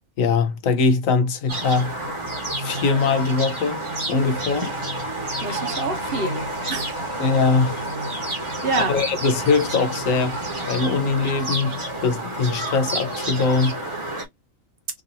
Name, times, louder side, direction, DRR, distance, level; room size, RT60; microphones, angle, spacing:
voice 1, 0.2-1.9 2.6-3.8 4.1-4.7 7.2-7.8 8.7-10.4 10.7-11.7 12.0-13.8, left 4 dB, 75° left, 1.2 m, -21 dB
sound 1, 1.5-14.2, right 1 dB, 25° right, 1.1 m, -29 dB
voice 2, 5.4-7.0 8.6-9.0, right 3 dB, 45° right, 1.1 m, -27 dB
3.7 x 2.7 x 2.6 m
omnidirectional pair, 1.4 m